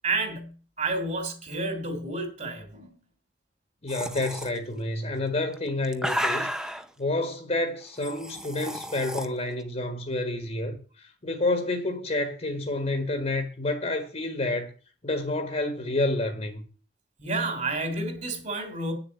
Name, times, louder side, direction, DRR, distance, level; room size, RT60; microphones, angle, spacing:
voice 1, 0.0-0.5 0.8-2.9 17.2-18.9, right 3 dB, 45° right, 3.2 m, -30 dB
voice 2, 3.8-14.7 15.0-16.7, left 2 dB, 40° left, 1.5 m, -29 dB
sound 1, 3.9-4.5 5.5-6.9 8.0-9.3, equal, 5° right, 0.7 m, -32 dB
9.0 x 7.1 x 8.4 m
head